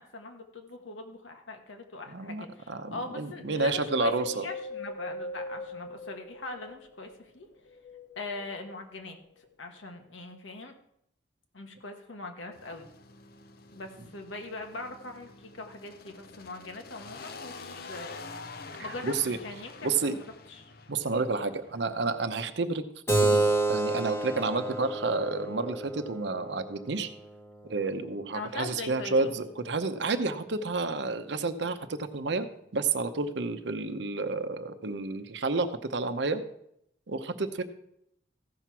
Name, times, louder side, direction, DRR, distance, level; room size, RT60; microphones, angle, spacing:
voice 1, 0.0-7.5 8.2-9.2 9.6-10.7 11.5-12.9 13.7-18.2 18.8-19.1 19.4-20.7 28.3-29.3, left 3 dB, 90° left, 5 dB, 1.3 m, -41 dB
voice 2, 2.1-4.5 18.8-19.4 19.8-20.1 20.9-22.8 23.2-27.1 27.6-32.5 32.7-36.4 37.1-37.6, right 3 dB, 70° right, 10 dB, 0.7 m, -30 dB
Wind, 3.5-7.0 7.6-8.8 9.4-9.5, left 2 dB, 70° left, 0.9 m, -41 dB
sound 1, 12.5-22.2, left 4 dB, 50° left, 0.6 m, -47 dB
Keyboard (musical), 23.1-28.2, right 2 dB, 15° left, 1.0 m, -29 dB
15.0 x 5.9 x 4.6 m, 0.77 s
head